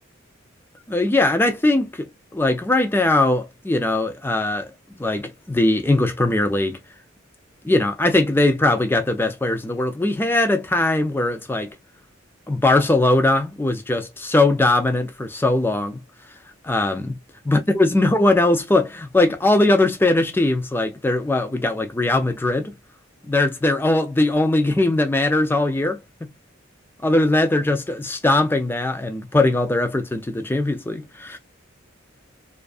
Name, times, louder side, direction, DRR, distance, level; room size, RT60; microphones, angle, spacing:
voice 1, 0.9-6.8 7.6-11.7 12.5-16.0 16.6-17.2 17.5-22.7 23.2-26.3 27.0-31.4, left 2 dB, 10° left, 0.3 m, -20 dB
2.5 x 2.3 x 2.3 m
head